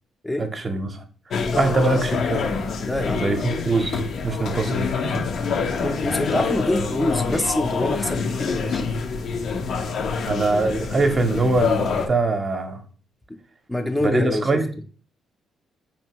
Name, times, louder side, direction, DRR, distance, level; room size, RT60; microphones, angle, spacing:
voice 1, 0.4-1.0 1.5-2.5 3.1-5.3 10.2-12.8 14.0-14.7, right 3 dB, 35° right, 0.6 m, -23 dB
sound 1, 1.3-12.1, left 5 dB, 65° left, 0.5 m, -26 dB
voice 2, 2.8-3.4 5.8-8.9 13.7-14.6, left 1 dB, 10° left, 0.5 m, -25 dB
4.3 x 2.7 x 2.9 m
cardioid pair, 90°, 0 cm